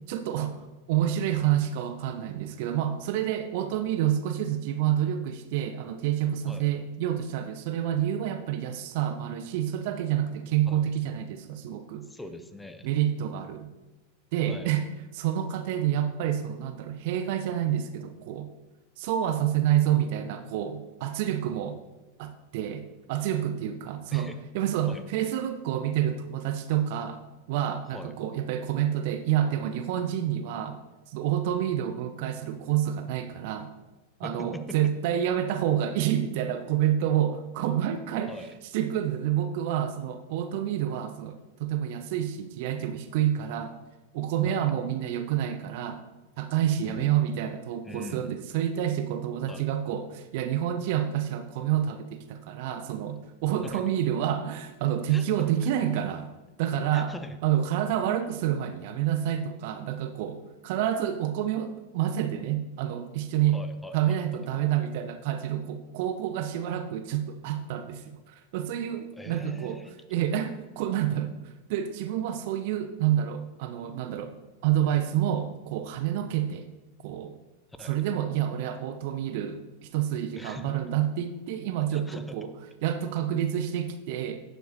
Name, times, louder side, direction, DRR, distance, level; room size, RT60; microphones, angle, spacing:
voice 1, 0.1-0.6 0.9-12.1 12.8-13.7 14.3-14.9 15.1-18.5 19.0-21.8 22.2-27.2 27.5-30.8 31.1-33.7 34.2-38.3 38.7-43.8 44.1-46.0 46.4-56.3 56.6-57.1 57.4-63.6 63.9-69.8 70.1-74.3 74.6-76.7 77.0-77.3 77.8-82.5 82.8-84.4, right 10 dB, 50° right, 9 dB, 0.5 m, -28 dB
voice 2, 12.0-12.9 14.5-14.7 24.1-24.4 24.9-25.0 27.9-28.1 34.2-34.8 38.3-38.5 44.4-44.7 46.8-47.2 47.8-48.3 49.5-49.7 53.6-53.8 55.1-55.5 56.9-57.4 63.5-64.2 69.1-69.9 77.8-78.0 80.4-80.7 81.9-82.4, left 1 dB, 5° left, 9 dB, 0.7 m, -41 dB
11.5 x 7.7 x 2.8 m, 1.1 s
figure-of-eight pair, 90°, 0 cm